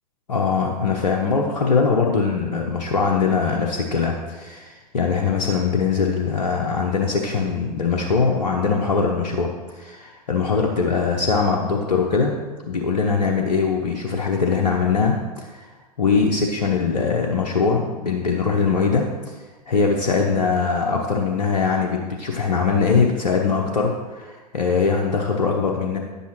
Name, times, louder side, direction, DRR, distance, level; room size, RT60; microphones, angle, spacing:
voice 1, 0.3-12.3 12.6-15.7 16.0-19.0 19.7-26.0, left 5 dB, 80° left, 1 dB, 1.0 m, -21 dB
10.5 x 8.3 x 3.1 m, 1.2 s
hypercardioid pair, 105°, 21 cm